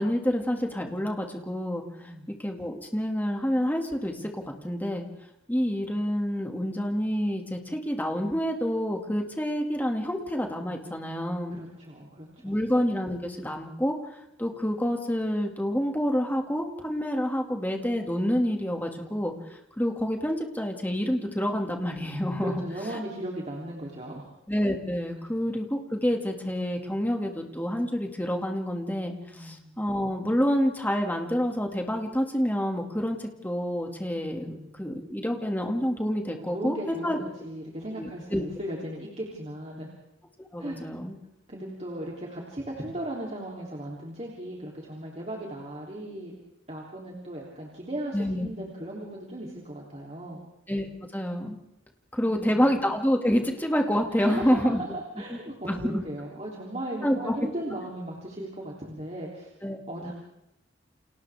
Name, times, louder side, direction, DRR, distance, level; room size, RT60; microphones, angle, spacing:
voice 1, 0.0-2.1 2.4-5.1 5.5-11.6 12.4-13.9 14.4-22.6 24.5-37.2 38.0-38.4 40.4-41.1 48.1-48.5 50.7-50.9 51.1-51.6 52.1-54.8 55.7-56.0 57.0-57.4 59.6-60.1, equal, 10° left, 2 dB, 2.4 m, -28 dB
voice 2, 11.5-12.6 22.4-24.4 29.3-29.8 34.4-34.8 36.3-39.9 40.6-40.8 41.5-46.3 46.7-50.4 52.2-52.7 54.1-59.5 59.9-60.1, right 1 dB, 35° right, -3 dB, 3.4 m, -37 dB
30.0 x 27.5 x 3.6 m, 0.88 s
head